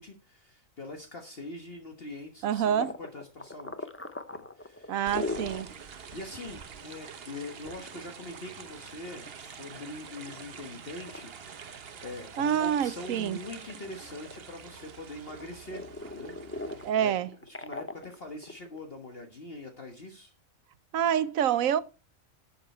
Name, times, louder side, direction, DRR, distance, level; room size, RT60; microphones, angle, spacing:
voice 1, 0.0-3.9 4.3-5.0 6.1-15.8 16.1-17.1 17.5-20.3, left 2 dB, 45° left, 1.5 m, -43 dB
voice 2, 2.4-2.9 4.9-5.7 12.4-13.4 16.8-17.3 20.9-21.8, right 9 dB, 75° right, 1.1 m, -27 dB
sound 1, 2.8-5.7 6.1-6.2 6.6-6.7 7.4-9.7 10.2-10.6 11.1-11.2 11.8-12.7 13.0-14.9 15.3-18.8, left 2 dB, 15° left, 0.4 m, -40 dB
sound 2, 5.1-16.9, right 6 dB, 50° right, 1.1 m, -46 dB
12.0 x 7.2 x 4.4 m
omnidirectional pair, 1.4 m